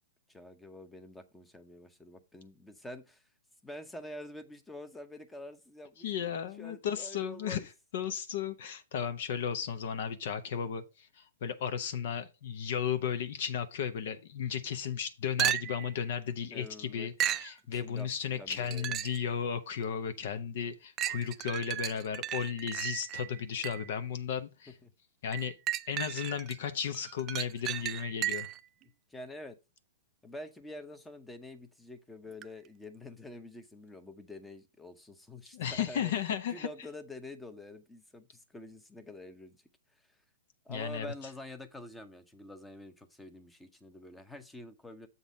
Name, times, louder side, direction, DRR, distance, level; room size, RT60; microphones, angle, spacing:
voice 1, 0.3-3.2 3.6-6.1 6.6-7.7 16.5-17.1 17.7-18.1 18.4-19.0 24.8-24.9 29.1-29.6 30.2-39.6 40.6-45.1, left 1 dB, 5° left, 0.8 m, -47 dB
voice 2, 6.0-7.6 7.9-24.7 25.2-25.6 25.9-28.5 35.5-36.7 40.7-41.1, left 8 dB, 55° left, 0.7 m, -34 dB
sound 1, 15.4-16.0 17.2-17.5 18.5-19.3 19.8-19.9 21.0-24.0 25.3-26.6 26.9-28.6 32.4-32.5, right 12 dB, 25° right, 0.4 m, -34 dB
7.2 x 4.0 x 5.1 m
hypercardioid pair, 140°, 0 cm